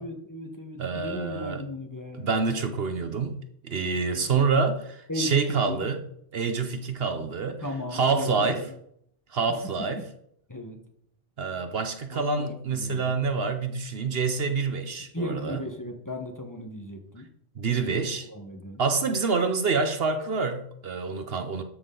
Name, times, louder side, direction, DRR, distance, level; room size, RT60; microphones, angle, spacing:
voice 1, 0.0-2.3 4.1-4.5 5.1-5.9 7.6-8.7 10.5-10.8 12.1-13.2 15.1-17.3 17.7-18.8, left 1 dB, 15° left, 1.1 m, -36 dB
voice 2, 0.8-1.6 2.2-3.4 3.6-6.0 6.3-7.6 7.9-8.6 9.3-10.0 11.4-15.6 17.6-18.2 18.8-21.6, right 4 dB, 60° right, 1.0 m, -27 dB
12.5 x 6.2 x 3.8 m
omnidirectional pair, 1.2 m